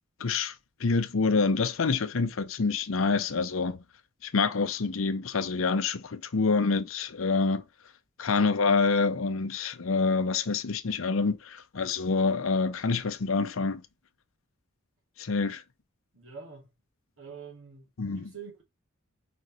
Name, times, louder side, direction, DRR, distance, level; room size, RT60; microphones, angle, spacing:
voice 1, 0.2-0.5 0.8-3.8 4.2-7.6 8.2-13.8 15.2-15.6 18.0-18.3, left 4 dB, 90° left, 0.7 m, -27 dB
voice 2, 16.1-16.7 17.2-18.6, right 6 dB, 80° right, 2.5 m, -46 dB
5.2 x 4.0 x 4.7 m
head